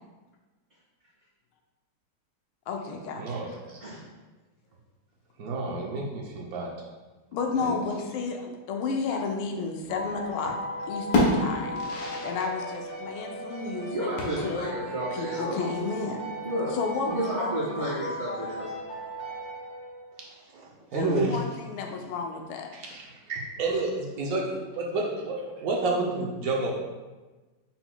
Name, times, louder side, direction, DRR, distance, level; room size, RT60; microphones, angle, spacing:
voice 1, 2.7-3.6 7.3-10.6 10.9-11.9 12.2-14.8 15.1-16.3 16.7-18.0 20.9-22.7, left 4 dB, 85° left, 3 dB, 1.5 m, -32 dB
voice 2, 3.2-3.8 5.4-6.7 7.6-7.8 20.5-21.4 22.7-26.7, right 2 dB, 70° right, -2 dB, 0.9 m, -30 dB
sound 1, 9.8-10.6 10.9-12.5 12.8-12.9 14.2-14.8, left 1 dB, 70° left, 1.5 m, -28 dB
sound 2, 9.9-20.3, equal, 50° left, 1.9 m, -37 dB
voice 3, 13.9-15.5 16.4-16.8 17.0-18.7, right 1 dB, 35° right, -11 dB, 1.6 m, -31 dB
5.8 x 3.9 x 2.2 m, 1.2 s
omnidirectional pair, 2.2 m